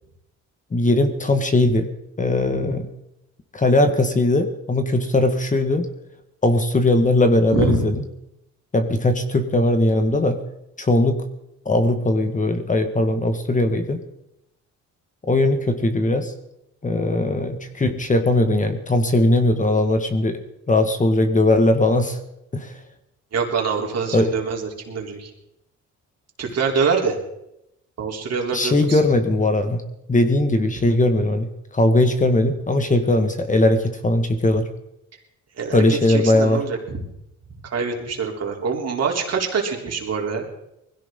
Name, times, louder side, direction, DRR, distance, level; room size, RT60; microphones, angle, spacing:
voice 1, 0.7-1.9 2.2-2.9 3.5-5.9 6.4-8.0 8.7-10.4 10.8-11.2 11.6-14.0 15.3-16.3 16.8-20.4 20.7-22.2 22.5-22.8 24.1-24.3 28.5-29.8 30.1-31.5 31.7-34.7 35.7-36.6, left 2 dB, 25° left, 7 dB, 1.7 m, -19 dB
voice 2, 7.5-7.8 23.3-25.3 26.4-27.2 28.0-29.0 35.6-37.0 37.6-40.4, right 5 dB, 55° right, 1 dB, 3.5 m, -25 dB
21.0 x 16.0 x 3.8 m, 0.84 s
cardioid pair, 90°, 30 cm